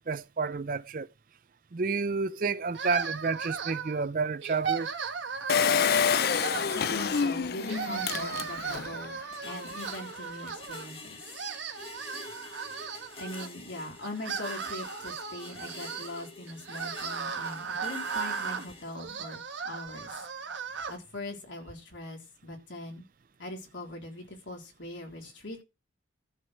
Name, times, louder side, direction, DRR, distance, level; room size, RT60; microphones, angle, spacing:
voice 1, 0.1-1.1 1.7-4.9, right 4 dB, 45° right, 0.5 m, -30 dB
sound 1, 2.7-4.0 4.4-5.9 6.3-7.3 7.6-10.9 11.2-13.5 14.0-21.0, right 6 dB, 85° right, 1.4 m, -37 dB
Engine, 5.5-9.0 9.4-9.5 9.7-9.8, left 6 dB, 55° left, 0.4 m, -27 dB
voice 2, 6.7-11.2 13.2-20.1 20.9-23.0 23.4-25.6, left 1 dB, 80° left, 3.7 m, -41 dB
sound 2, 9.3-18.8, left 3 dB, 30° left, 1.8 m, -48 dB
13.5 x 4.6 x 6.3 m
head